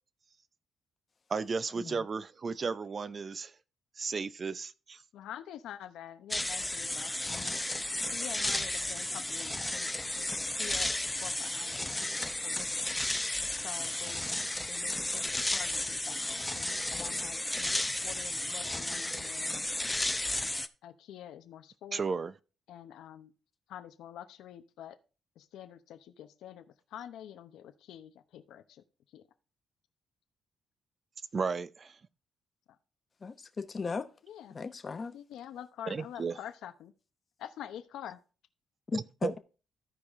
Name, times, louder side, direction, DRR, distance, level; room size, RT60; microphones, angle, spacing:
voice 1, 1.3-3.5 4.0-5.0 21.9-22.3 31.3-32.0 35.9-36.4 38.9-39.3, right 5 dB, 40° right, 0.6 m, -34 dB
voice 2, 5.1-7.8 8.0-10.3 10.6-11.9 12.4-12.9 13.6-14.2 14.7-20.0 20.8-22.0 22.7-23.3 23.7-25.0 25.4-26.6 26.9-28.8 29.1-29.2 34.2-34.6 35.1-36.9 37.4-38.2, left 10 dB, 80° left, 0.9 m, -47 dB
sound 1, 6.3-20.7, left 1 dB, 10° left, 0.6 m, -33 dB
voice 3, 33.2-34.1 34.5-35.2 38.9-39.4, left 4 dB, 35° left, 0.9 m, -37 dB
14.0 x 4.9 x 3.6 m
cardioid pair, 90°, 0 cm